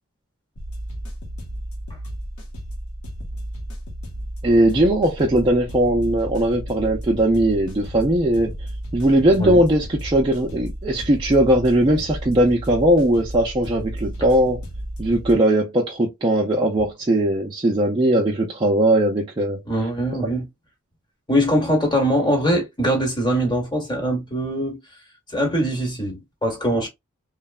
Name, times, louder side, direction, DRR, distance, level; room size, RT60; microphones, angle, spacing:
sound 1, 0.6-15.3, equal, 75° left, 0.9 m, -33 dB
voice 1, 4.4-8.5 8.9-14.6 15.0-19.6, right 1 dB, 20° right, 0.4 m, -19 dB
voice 2, 19.7-20.4 21.3-24.8 25.3-26.9, equal, 20° left, 1.1 m, -22 dB
3.1 x 2.0 x 2.3 m
head